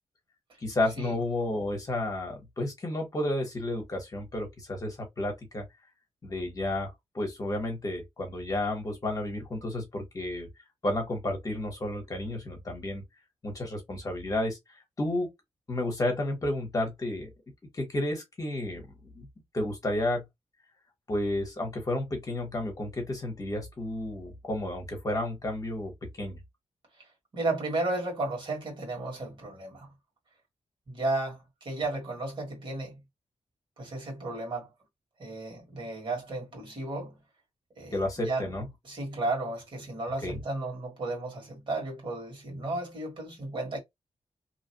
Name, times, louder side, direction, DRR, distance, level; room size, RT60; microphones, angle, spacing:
voice 1, 0.6-5.6 6.2-10.5 10.8-13.0 13.4-14.6 15.0-15.3 15.7-17.3 17.7-19.3 19.5-20.2 21.1-26.4 37.9-38.7 40.2-40.4, left 1 dB, 30° left, 1.2 m, -31 dB
voice 2, 27.3-29.9 30.9-31.4 31.6-33.0 33.8-34.7 35.2-37.1 37.8-38.4 38.8-43.8, right 2 dB, 45° right, 1.8 m, -33 dB
2.9 x 2.4 x 2.8 m
wide cardioid pair, 160°, 11 cm